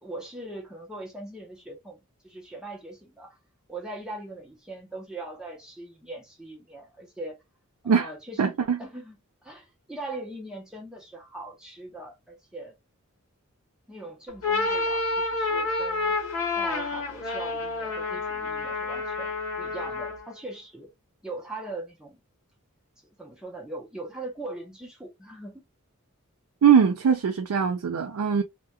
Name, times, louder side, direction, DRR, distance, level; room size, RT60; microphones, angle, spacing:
voice 1, 0.0-3.4 3.7-7.4 7.8-9.2 9.4-12.7 13.9-16.1 16.6-20.9 21.2-22.2 23.0-25.6, right 2 dB, 5° right, 0.7 m, -40 dB
voice 2, 8.4-8.8 26.6-28.4, right 7 dB, 85° right, 0.4 m, -21 dB
sound 1, 14.3-20.3, left 3 dB, 70° left, 1.0 m, -29 dB
2.3 x 2.2 x 2.7 m
head